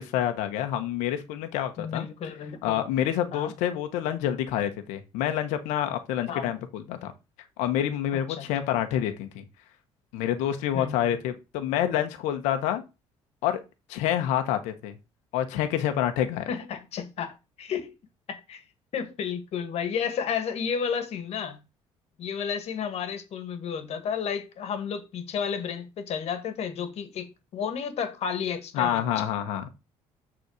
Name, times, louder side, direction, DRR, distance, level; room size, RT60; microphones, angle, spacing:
voice 1, 0.0-2.1 2.6-7.1 7.6-9.4 10.1-12.8 13.4-13.6 13.9-14.9 15.3-16.5 28.7-29.7, left 11 dB, 85° left, 1.2 m, -27 dB
voice 2, 1.8-2.8 3.3-3.5 6.3-6.5 8.3-8.5 10.7-11.2 16.5-17.9 18.3-18.6 18.9-21.6 22.2-29.3, left 7 dB, 60° left, 1.8 m, -32 dB
6.7 x 4.2 x 6.5 m
supercardioid pair, 80°, 12 cm